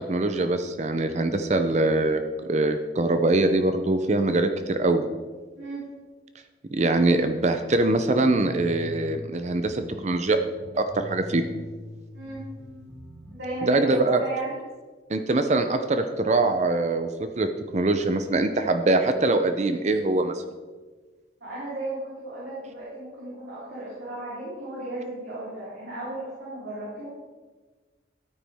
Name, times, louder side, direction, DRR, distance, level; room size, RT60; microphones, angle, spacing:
voice 1, 0.0-5.1 6.7-10.4 10.7-11.4 13.6-14.2 15.1-20.4, right 2 dB, 40° right, 8 dB, 0.6 m, -23 dB
voice 2, 5.6-5.9 12.1-12.4 13.3-14.6 21.4-27.1, right 2 dB, 85° right, -8 dB, 3.7 m, -35 dB
sound 1, 8.0-9.3 9.6-13.3, left 1 dB, 10° left, 2.2 m, -42 dB
13.5 x 9.2 x 3.5 m, 1.4 s
head